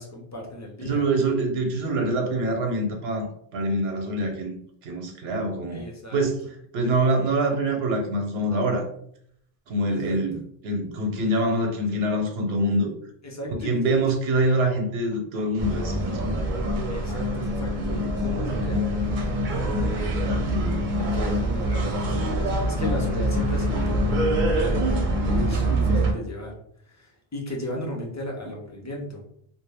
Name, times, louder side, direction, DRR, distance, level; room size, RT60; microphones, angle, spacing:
voice 1, 0.0-1.1 5.7-6.2 9.9-10.4 13.2-14.0 16.9-20.2 21.0-25.0 25.3-29.2, left 1 dB, 30° left, -1 dB, 0.3 m, -35 dB
voice 2, 0.9-3.3 3.5-4.6 4.8-5.8 6.1-6.3 6.7-8.9 9.7-12.9 13.5-16.5 20.5-20.8, right 1 dB, 85° right, 4 dB, 0.9 m, -25 dB
sound 1, 15.6-26.1, right 1 dB, 60° right, 0.6 m, -25 dB
2.2 x 2.0 x 3.3 m, 0.68 s
omnidirectional pair, 1.0 m